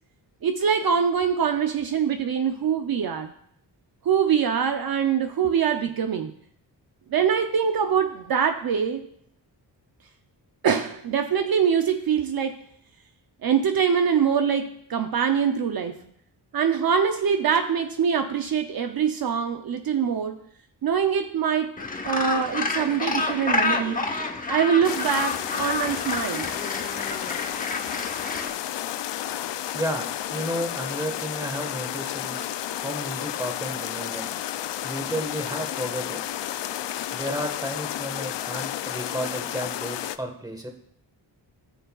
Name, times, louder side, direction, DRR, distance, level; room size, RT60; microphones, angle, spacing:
voice 1, 0.4-3.3 4.0-6.3 7.1-9.1 10.6-12.6 13.4-16.0 16.5-20.4 20.8-21.8 22.0-24.0 24.5-26.5, right 7 dB, 60° right, 7 dB, 0.6 m, -24 dB
Gull seagull, 21.8-28.5, left 3 dB, 20° left, 0.8 m, -29 dB
sound 1, 24.8-40.2, left 12 dB, 80° left, 0.5 m, -32 dB
voice 2, 29.7-34.4 34.8-36.2 37.1-40.7, equal, 10° right, 4 dB, 1.3 m, -32 dB
17.0 x 6.7 x 2.3 m, 0.68 s
wide cardioid pair, 145°, 42 cm